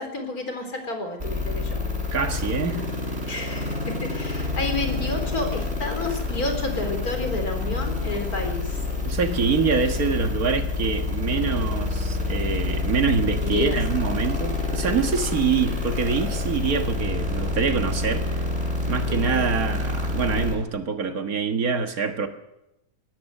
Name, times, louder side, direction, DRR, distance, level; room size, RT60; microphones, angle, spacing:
voice 1, 0.0-1.8 3.3-8.8 9.3-9.5 13.4-13.8 19.1-19.5, left 2 dB, 80° left, 5 dB, 4.6 m, -30 dB
sound 1, 1.2-20.5, left 3 dB, 45° right, 8.5 m, -27 dB
voice 2, 2.1-2.8 9.0-18.4 18.9-22.3, right 5 dB, 70° right, 6 dB, 2.0 m, -25 dB
21.5 x 18.5 x 6.6 m, 0.91 s
omnidirectional pair, 1.6 m